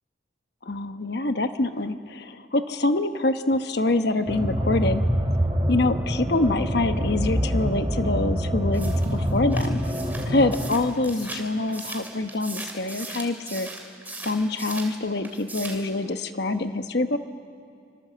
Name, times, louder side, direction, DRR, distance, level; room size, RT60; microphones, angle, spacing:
voice 1, 0.6-5.0 5.7-9.8 10.3-13.7 14.2-17.2, left 2 dB, 55° left, 9 dB, 1.1 m, -25 dB
sound 1, 4.3-10.7, equal, 25° right, 3.7 m, -25 dB
sound 2, 8.7-15.0 15.2-15.9, right 3 dB, 10° right, 2.8 m, -38 dB
26.0 x 26.0 x 7.7 m, 2.4 s
head